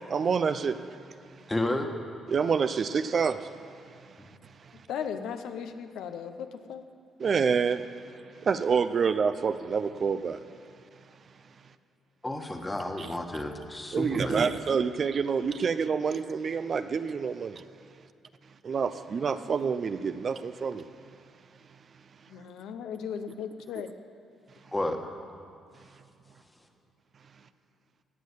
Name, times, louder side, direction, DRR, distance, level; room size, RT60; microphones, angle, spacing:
voice 1, 0.1-0.8 2.3-3.5 7.2-7.9 8.4-10.4 13.0-13.1 13.9-17.6 18.6-20.8, right 6 dB, 45° right, 12 dB, 0.5 m, -27 dB
voice 2, 1.5-1.9 4.2-4.3 12.2-14.5 24.7-25.1, left 1 dB, 15° left, 4 dB, 1.5 m, -31 dB
voice 3, 4.7-6.9 22.3-23.9, left 7 dB, 85° left, 8 dB, 0.8 m, -37 dB
18.0 x 6.5 x 8.4 m, 2.6 s
cardioid pair, 90°, 0 cm